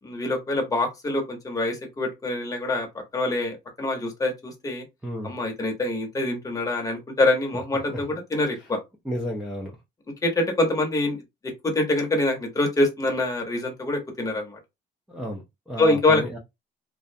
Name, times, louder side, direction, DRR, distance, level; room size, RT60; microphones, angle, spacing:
voice 1, 0.0-2.9 3.1-4.8 5.2-8.8 10.2-11.2 11.4-14.6 15.8-16.2, left 2 dB, 20° left, 0.8 m, -25 dB
voice 2, 5.0-5.4 7.9-8.0 8.6-8.7 9.0-9.8 15.1-16.4, equal, ahead, 0.4 m, -32 dB
2.4 x 2.1 x 2.6 m
cardioid pair, 145°, 19 cm